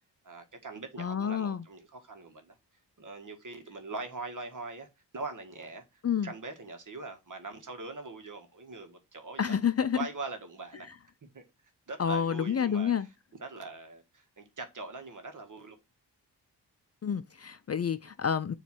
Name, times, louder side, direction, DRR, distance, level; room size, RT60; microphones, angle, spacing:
voice 1, 0.2-2.6 3.0-9.6 9.9-10.9 11.3-11.4 11.9-13.1 13.4-15.8, right 3 dB, 45° right, 1.8 m, -42 dB
voice 2, 1.0-1.6 6.0-6.3 9.4-10.0 12.0-13.1 17.0-18.5, left 7 dB, 35° left, 0.6 m, -29 dB
7.1 x 3.3 x 6.1 m
cardioid pair, 55°, 42 cm